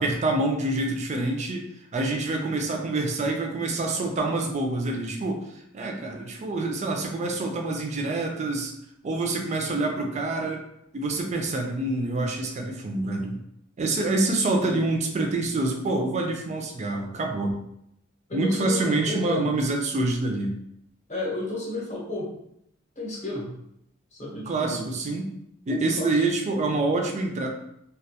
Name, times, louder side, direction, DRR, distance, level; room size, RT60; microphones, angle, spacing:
voice 1, 0.0-1.6 1.9-5.4 5.7-8.7 9.0-10.6 10.9-13.4 13.8-17.6 18.3-20.5 24.5-25.3 25.7-27.5, right 2 dB, 35° right, 2 dB, 0.4 m, -26 dB
voice 2, 18.3-19.5 21.1-22.3 23.0-23.5 24.1-24.9 25.7-26.2, left 2 dB, 35° left, -4 dB, 0.7 m, -32 dB
2.2 x 2.2 x 2.7 m, 0.77 s
head